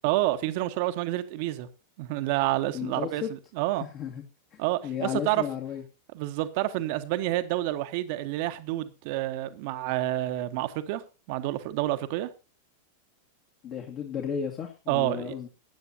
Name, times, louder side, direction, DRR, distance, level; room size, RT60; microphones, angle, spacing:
voice 1, 0.0-1.7 2.0-3.2 3.5-3.8 4.6-5.4 6.1-11.0 11.3-12.3 14.9-15.3, right 15 dB, 45° right, 1.4 m, -28 dB
voice 2, 2.7-3.3 3.8-4.2 4.5-5.8 13.6-15.5, left 8 dB, 35° left, 2.1 m, -34 dB
21.0 x 9.6 x 2.8 m
figure-of-eight pair, 90°, 0 cm